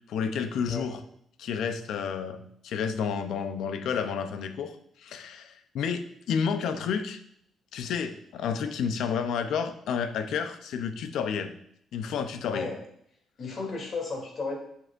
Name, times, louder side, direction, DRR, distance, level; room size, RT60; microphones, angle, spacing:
voice 1, 0.1-1.0 1.4-7.2 7.7-11.5 11.9-12.7, left 6 dB, 80° left, 9 dB, 0.7 m, -30 dB
voice 2, 12.5-12.8 13.4-14.5, left 4 dB, 50° left, 1 dB, 2.8 m, -34 dB
7.9 x 7.5 x 2.6 m, 0.69 s
cardioid pair, 90°, 0 cm